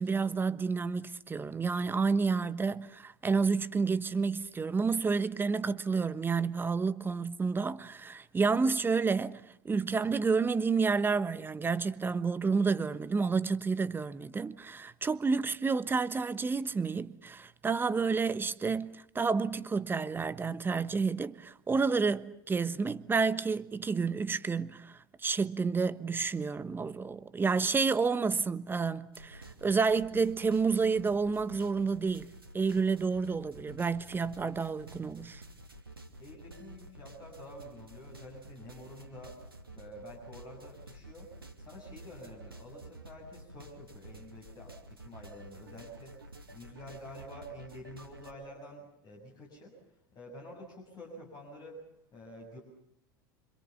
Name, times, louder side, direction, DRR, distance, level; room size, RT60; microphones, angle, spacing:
voice 1, 0.0-35.4, right 4 dB, 15° right, 1.2 m, -30 dB
sound 1, 29.1-48.3, right 1 dB, 85° right, 2.6 m, -50 dB
voice 2, 36.2-41.3 41.6-46.3 46.5-49.8 50.1-51.8 52.1-52.6, equal, 35° left, 7.2 m, -49 dB
28.5 x 26.0 x 7.1 m
figure-of-eight pair, 75°, 12 cm